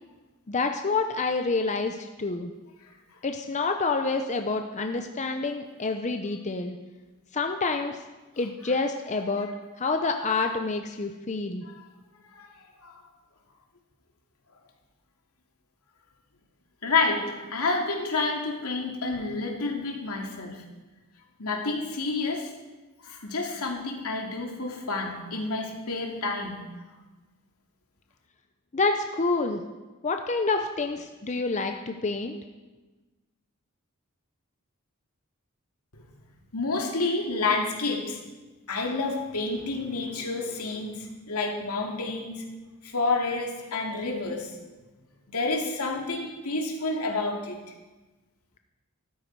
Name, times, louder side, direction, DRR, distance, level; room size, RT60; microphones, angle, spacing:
voice 1, 0.5-2.5 3.2-6.8 7.3-8.0 8.4-9.5 9.8-11.6 28.7-29.6 30.0-32.3, left 3 dB, 35° left, 5 dB, 0.7 m, -28 dB
voice 2, 16.8-20.6 21.4-22.5 23.0-26.6 35.9-36.0 36.5-38.2 38.7-42.4 42.8-44.5 45.3-47.6, left 3 dB, 80° left, 1 dB, 2.5 m, -29 dB
14.0 x 13.0 x 4.7 m, 1.2 s
head